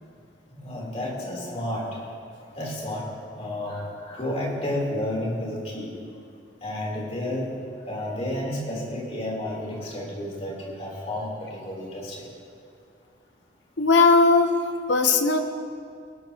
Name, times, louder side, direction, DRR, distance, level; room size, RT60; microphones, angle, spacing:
voice 1, 0.5-1.8 2.6-3.0 3.4-5.9 6.6-7.5 7.9-12.2, left 1 dB, 35° left, -4 dB, 3.8 m, -31 dB
voice 2, 13.8-15.4, left 3 dB, 65° left, 5 dB, 1.1 m, -19 dB
19.5 x 17.5 x 3.1 m, 2.3 s
head